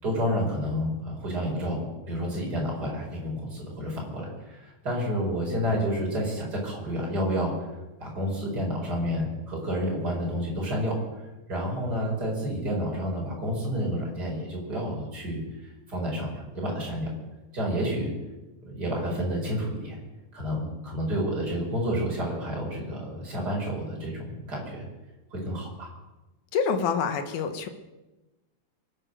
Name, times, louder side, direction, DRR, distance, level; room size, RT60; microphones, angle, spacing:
voice 1, 0.0-7.5 8.0-11.0 11.5-15.4 15.9-17.1 17.5-18.1 18.6-20.0 20.3-24.9 25.3-25.9, equal, 25° right, -2 dB, 4.9 m, -30 dB
voice 2, 26.5-27.7, left 6 dB, 65° left, 7 dB, 2.4 m, -26 dB
24.0 x 8.1 x 6.6 m, 1.1 s
omnidirectional pair, 4.1 m